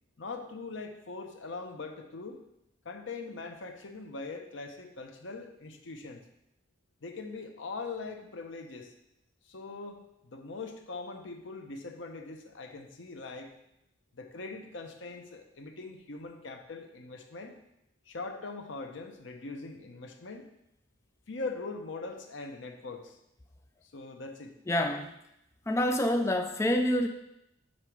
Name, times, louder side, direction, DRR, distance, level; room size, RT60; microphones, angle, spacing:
voice 1, 0.2-2.4 2.8-6.2 7.0-8.9 9.4-13.5 14.1-17.6 18.1-20.5 21.3-23.2 23.8-24.5, left 3 dB, 80° left, 5 dB, 0.8 m, -41 dB
voice 2, 24.7-25.1 25.7-27.1, left 1 dB, 15° left, 5 dB, 0.4 m, -27 dB
7.5 x 4.0 x 4.8 m, 0.82 s
head